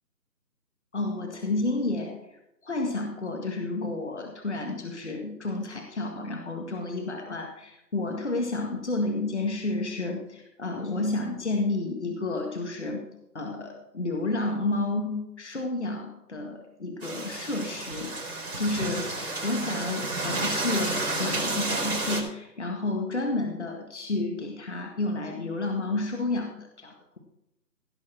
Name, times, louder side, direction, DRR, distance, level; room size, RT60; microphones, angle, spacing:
voice 1, 0.9-2.2 2.6-13.0 13.3-18.1 18.6-27.2, left 2 dB, 45° left, 3 dB, 1.9 m, -31 dB
sound 1, 17.0-22.2, right 2 dB, 60° right, 4.3 m, -31 dB
17.0 x 7.0 x 4.4 m, 0.83 s
figure-of-eight pair, 170°, 49 cm